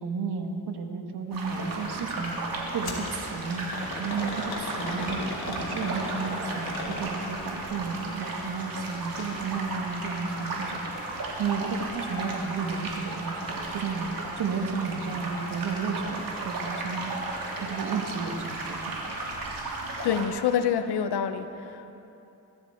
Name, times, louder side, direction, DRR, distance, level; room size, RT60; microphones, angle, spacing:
voice 1, 0.0-3.7 4.0-10.8 11.4-17.1 17.6-19.2, right 5 dB, 75° right, 4 dB, 1.6 m, -33 dB
sound 1, 1.3-20.3, right 2 dB, 60° right, 3.2 m, -35 dB
sound 2, 2.8-3.1 3.7-7.4 9.0-9.3 9.7-9.8 10.6-10.7, left 3 dB, 70° left, 2.9 m, -36 dB
voice 2, 20.0-21.9, left 8 dB, 90° left, 10 dB, 1.0 m, -27 dB
22.0 x 13.5 x 4.5 m, 2.9 s
cardioid pair, 85°, 39 cm